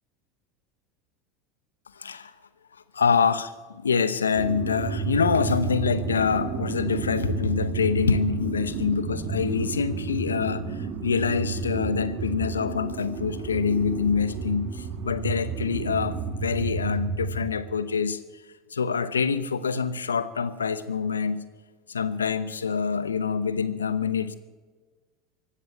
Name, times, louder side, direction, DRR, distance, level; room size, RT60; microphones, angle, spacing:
voice 1, 2.0-2.3 2.9-18.2 18.7-21.4 21.9-24.4, left 6 dB, 90° left, 14 dB, 0.9 m, -26 dB
sound 1, 4.3-17.5, right 4 dB, 60° right, 2.2 m, -31 dB
16.0 x 11.5 x 7.8 m, 1.3 s
hypercardioid pair, 85°, 0 cm